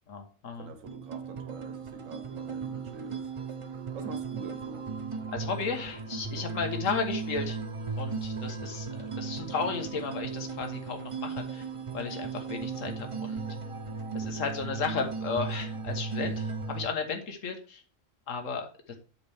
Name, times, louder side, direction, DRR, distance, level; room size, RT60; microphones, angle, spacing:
voice 1, 0.1-0.7 5.3-7.6 8.0-11.7 11.9-13.4 14.1-17.8 18.3-19.0, left 5 dB, 80° left, 1.6 m, -34 dB
voice 2, 0.6-3.5 3.9-4.9, right 4 dB, 85° right, 1.3 m, -45 dB
sound 1, 0.9-16.9, right 5 dB, 35° right, 0.5 m, -36 dB
8.2 x 5.9 x 3.5 m
omnidirectional pair, 1.3 m